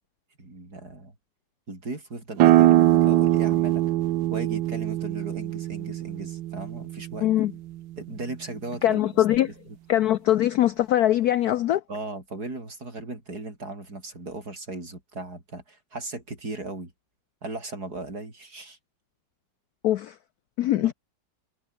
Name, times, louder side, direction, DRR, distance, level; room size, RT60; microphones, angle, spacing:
voice 1, 0.4-1.1 1.7-3.8 4.3-7.3 8.0-9.2 11.9-16.9 17.4-18.8 20.8-20.9, right 2 dB, 55° right, 6.1 m, -37 dB
sound 1, 2.4-7.8, right 14 dB, 90° right, 1.5 m, -22 dB
voice 2, 7.2-7.5 8.8-9.5 9.9-11.8 19.8-20.2 20.6-20.9, left 13 dB, 70° left, 1.0 m, -22 dB
omnidirectional pair, 2.0 m